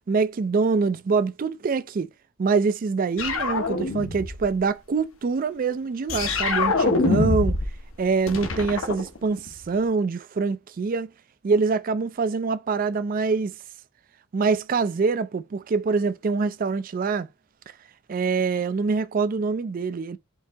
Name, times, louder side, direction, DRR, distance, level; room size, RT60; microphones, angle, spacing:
voice 1, 0.1-2.1 2.4-7.5 8.0-11.1 11.4-13.5 14.3-17.3 18.1-20.2, right 4 dB, 40° right, 0.3 m, -24 dB
sound 1, 3.2-4.5 6.1-7.8 8.0-9.6, left 3 dB, 70° left, 0.8 m, -24 dB
4.6 x 2.7 x 3.3 m
head